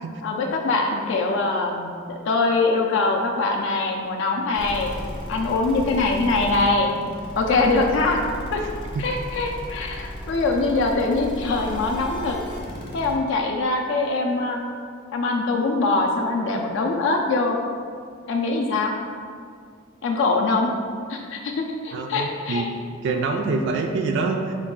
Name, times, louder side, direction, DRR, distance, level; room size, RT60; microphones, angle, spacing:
voice 1, 0.2-4.9 5.3-6.9 7.4-8.2 8.5-8.6 9.0-12.4 12.9-14.6 15.1-17.6 18.3-18.9 20.0-20.7 21.1-22.7, left 3 dB, 65° left, 1 dB, 0.4 m, -23 dB
sound 1, 4.5-13.2, left 1 dB, 25° left, 0.7 m, -35 dB
voice 2, 21.9-22.7 23.0-24.5, right 4 dB, 60° right, 3 dB, 0.3 m, -25 dB
4.6 x 2.3 x 3.6 m, 2.1 s
head